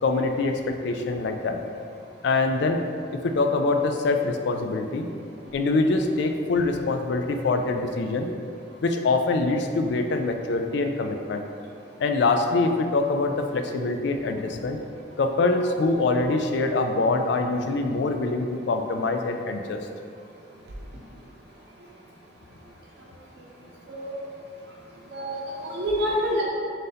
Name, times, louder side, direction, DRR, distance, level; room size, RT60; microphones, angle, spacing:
voice 1, 0.0-1.6 2.2-2.8 3.1-5.1 5.5-8.3 8.8-11.4 12.0-14.8 15.2-19.8, left 3 dB, 60° left, 5 dB, 0.3 m, -24 dB
voice 2, 25.1-26.4, equal, 60° right, -4 dB, 0.6 m, -27 dB
3.8 x 2.6 x 4.0 m, 2.3 s
head